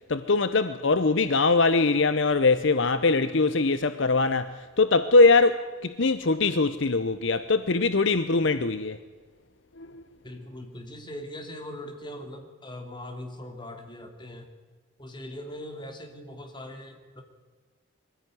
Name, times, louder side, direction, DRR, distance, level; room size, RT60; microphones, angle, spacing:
voice 1, 0.1-9.0 9.8-10.0, left 3 dB, 60° left, 0.8 m, -22 dB
voice 2, 10.2-14.5 15.0-17.2, left 1 dB, 20° left, 2.8 m, -40 dB
22.5 x 15.5 x 9.4 m
head